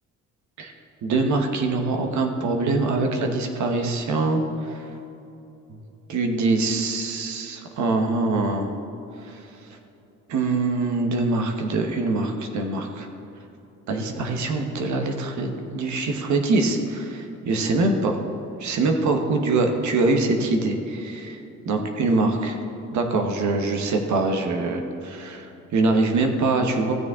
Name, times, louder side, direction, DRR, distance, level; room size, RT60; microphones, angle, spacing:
voice 1, 1.0-4.8 6.1-8.7 9.3-9.4 10.3-13.1 13.9-18.2 18.6-21.4 21.7-22.6 22.9-26.9, right 3 dB, 70° right, 4 dB, 1.1 m, -24 dB
15.0 x 7.0 x 3.7 m, 2.9 s
cardioid pair, 90°, 30 cm